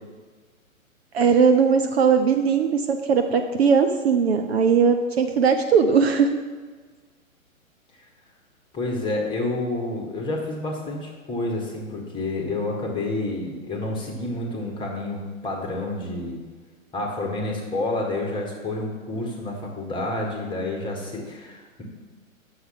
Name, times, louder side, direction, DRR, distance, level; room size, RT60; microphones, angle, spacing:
voice 1, 1.1-6.4, right 6 dB, 45° right, 6 dB, 0.7 m, -19 dB
voice 2, 8.7-16.4 16.9-21.8, left 2 dB, 10° left, 0 dB, 1.5 m, -29 dB
8.0 x 6.6 x 5.8 m, 1.4 s
figure-of-eight pair, 125°, 42 cm